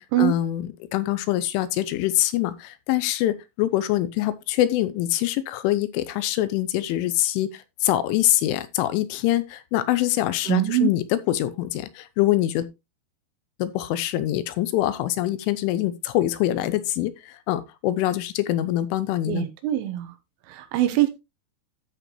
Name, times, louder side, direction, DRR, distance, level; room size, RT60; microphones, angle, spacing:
voice 1, 0.2-12.7 13.6-19.5, left 14 dB, 85° left, 3.2 m, -24 dB
voice 2, 10.5-10.9 19.3-20.1 20.5-21.1, right 13 dB, 85° right, 3.7 m, -23 dB
13.0 x 5.1 x 3.2 m
omnidirectional pair, 5.5 m